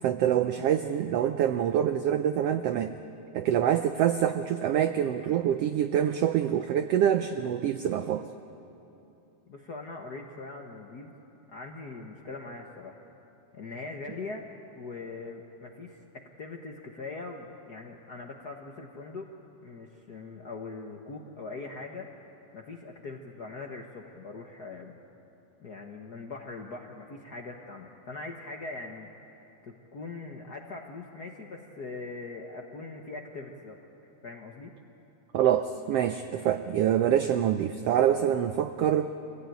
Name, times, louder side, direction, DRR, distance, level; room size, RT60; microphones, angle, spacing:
voice 1, 0.0-2.9 3.3-8.3 35.3-39.1, right 10 dB, 80° right, 9 dB, 1.4 m, -25 dB
voice 2, 9.5-11.1 11.5-13.0 13.5-14.5 14.8-19.3 19.6-22.1 22.5-25.0 25.6-29.4 29.6-33.8 34.2-34.7, left 3 dB, 55° left, 1 dB, 1.1 m, -41 dB
24.0 x 16.5 x 9.2 m, 2.9 s
omnidirectional pair, 3.4 m